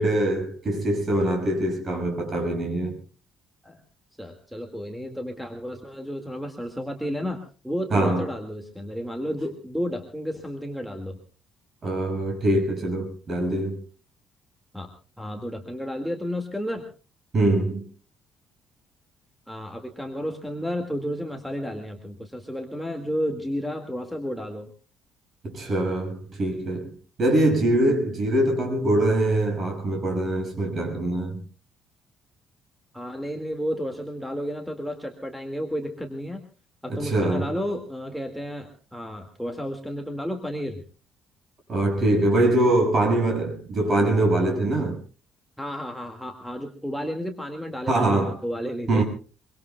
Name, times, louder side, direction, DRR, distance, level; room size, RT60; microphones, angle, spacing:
voice 1, 0.0-3.0 7.9-8.3 11.8-13.8 17.3-17.9 25.4-26.9 27.2-31.5 36.9-37.6 41.7-45.0 47.9-48.4 48.9-49.0, right 1 dB, 35° right, 6.2 m, -23 dB
voice 2, 4.2-11.2 14.7-14.9 15.2-16.9 19.5-24.7 32.9-36.4 36.8-40.8 45.6-49.0, equal, ahead, 1.9 m, -32 dB
24.5 x 24.0 x 2.2 m
cardioid pair, 160°, 0 cm